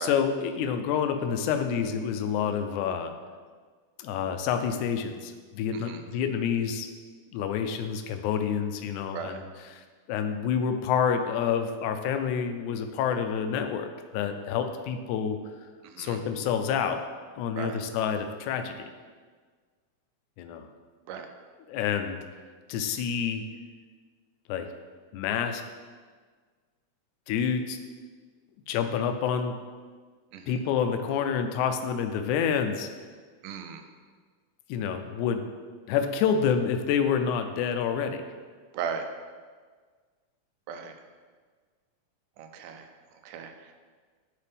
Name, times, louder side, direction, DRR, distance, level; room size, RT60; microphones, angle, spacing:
voice 1, 0.0-3.1 4.0-6.9 7.3-9.4 10.1-15.4 16.0-17.0 17.4-18.9 20.4-20.7 21.7-22.2 22.7-23.5 24.5-24.7 25.1-25.6 27.3-27.8 28.7-29.6 30.5-32.9 34.7-35.5 35.9-38.2, left 7 dB, 80° left, 7 dB, 1.9 m, -28 dB
voice 2, 5.7-6.0 9.1-9.4 15.8-16.2 17.5-17.8 21.1-21.3 30.3-30.6 33.4-33.8 38.7-39.0 40.7-40.9 42.4-43.7, right 7 dB, 85° right, 6 dB, 2.1 m, -37 dB
11.0 x 4.3 x 3.4 m, 1.5 s
omnidirectional pair, 3.6 m